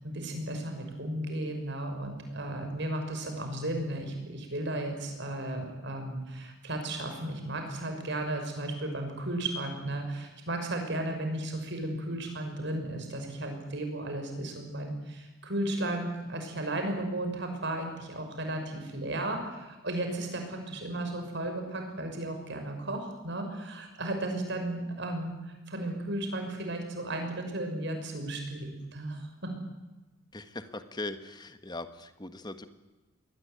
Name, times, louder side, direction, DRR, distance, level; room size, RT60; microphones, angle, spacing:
voice 1, 0.0-25.3 25.7-29.5, right 1 dB, 55° right, 5 dB, 6.1 m, -34 dB
voice 2, 30.3-32.7, left 2 dB, 20° left, 10 dB, 1.5 m, -40 dB
22.5 x 19.0 x 9.5 m, 1.1 s
head